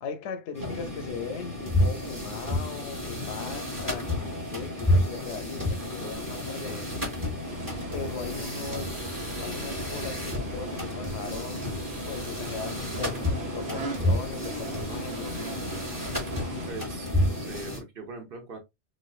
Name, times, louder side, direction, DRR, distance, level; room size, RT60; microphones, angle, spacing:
voice 1, 0.0-7.1 7.9-15.6, left 5 dB, 85° left, 0.9 m, -39 dB
sound 1, 0.6-17.8, left 1 dB, 20° right, 0.9 m, -31 dB
voice 2, 5.7-7.0 16.6-18.6, right 3 dB, 55° right, 1.0 m, -42 dB
sound 2, 7.5-16.7, right 3 dB, 85° right, 1.3 m, -40 dB
4.0 x 2.5 x 2.3 m
omnidirectional pair, 1.2 m